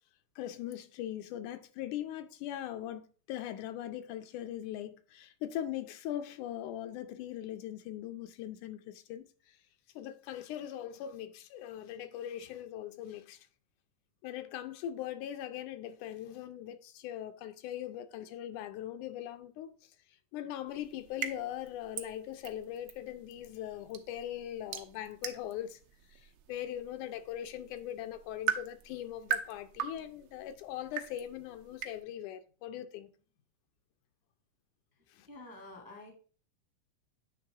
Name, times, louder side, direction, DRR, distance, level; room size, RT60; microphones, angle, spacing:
voice 1, 0.4-9.6 10.0-13.5 14.2-20.0 20.3-25.8 26.1-33.1 35.1-35.3, left 11 dB, 80° left, 2.1 m, -41 dB
sound 1, 20.7-32.0, right 9 dB, 70° right, 1.6 m, -41 dB
voice 2, 35.3-36.1, left 2 dB, 15° right, 0.6 m, -48 dB
9.5 x 3.3 x 4.7 m
omnidirectional pair, 3.5 m